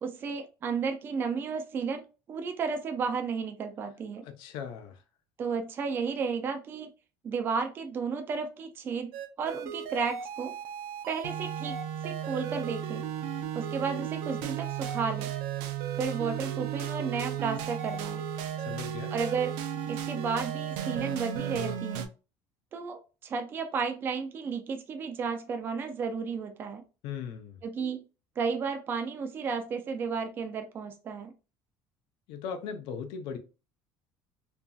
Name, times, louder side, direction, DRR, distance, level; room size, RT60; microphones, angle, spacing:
voice 1, 0.0-4.2 5.4-6.9 7.2-10.5 11.1-11.8 12.0-13.0 13.5-15.3 16.0-18.2 19.1-19.5 19.9-22.0 22.7-26.8 27.6-28.0 28.4-31.3, right 5 dB, 25° right, 0.3 m, -33 dB
voice 2, 4.2-5.0 18.7-19.1 27.0-27.6 32.3-33.4, left 7 dB, 70° left, 0.5 m, -38 dB
sound 1, 9.1-22.1, right 9 dB, 85° right, 0.5 m, -35 dB
2.8 x 2.6 x 2.2 m
cardioid pair, 165°, 9 cm